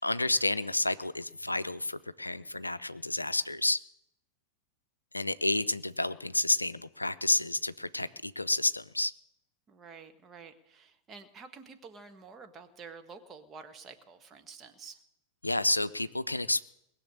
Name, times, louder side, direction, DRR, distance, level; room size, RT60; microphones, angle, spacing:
voice 1, 0.0-3.8 5.1-9.1 15.4-16.7, left 2 dB, 85° left, 15 dB, 0.5 m, -30 dB
voice 2, 9.7-15.0, right 5 dB, 25° right, 6 dB, 1.5 m, -49 dB
20.5 x 7.1 x 8.5 m, 0.80 s
figure-of-eight pair, 90°, 0 cm